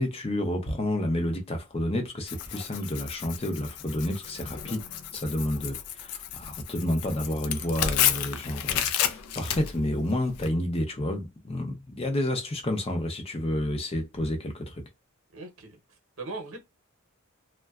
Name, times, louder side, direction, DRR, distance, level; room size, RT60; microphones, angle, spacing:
voice 1, 0.0-4.8 5.1-14.8, left 1 dB, 25° left, 0.5 m, -30 dB
Tearing, 2.3-10.5, left 10 dB, 85° left, 0.4 m, -31 dB
voice 2, 15.3-16.6, right 3 dB, 70° right, 0.8 m, -40 dB
2.7 x 2.2 x 2.3 m
head